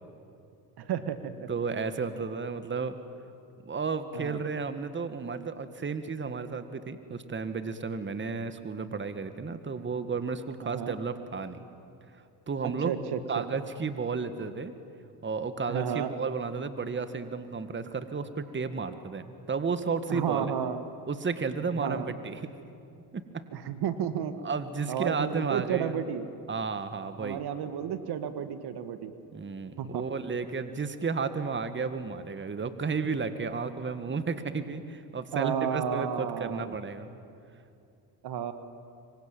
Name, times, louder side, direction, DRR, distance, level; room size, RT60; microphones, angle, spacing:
voice 1, 0.8-1.5 4.1-4.4 10.6-10.9 12.6-13.4 15.7-16.1 20.1-20.8 21.8-22.1 23.5-24.3 24.9-26.3 27.2-29.1 29.8-30.0 35.3-36.7 38.2-38.5, right 8 dB, 55° right, 10 dB, 1.9 m, -32 dB
voice 2, 1.5-3.0 3.6-11.6 12.5-12.9 13.3-14.8 15.2-20.5 21.1-22.5 23.1-23.4 24.4-26.0 26.5-27.4 29.3-37.1, right 5 dB, 25° right, 10 dB, 2.0 m, -33 dB
25.5 x 24.0 x 9.2 m, 2.6 s
hypercardioid pair, 75°, 48 cm